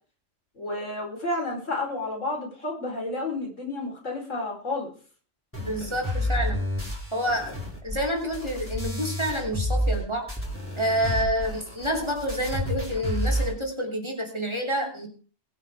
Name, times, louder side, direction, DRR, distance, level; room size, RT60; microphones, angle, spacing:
voice 1, 0.5-4.9, left 2 dB, 65° left, 1 dB, 4.7 m, -31 dB
sound 1, 5.5-10.0 10.3-13.5, left 1 dB, 10° left, 4.4 m, -30 dB
voice 2, 5.6-6.6 7.1-10.3 10.8-15.1, equal, 20° right, 2 dB, 3.1 m, -28 dB
22.0 x 9.1 x 3.6 m, 0.41 s
omnidirectional pair, 1.4 m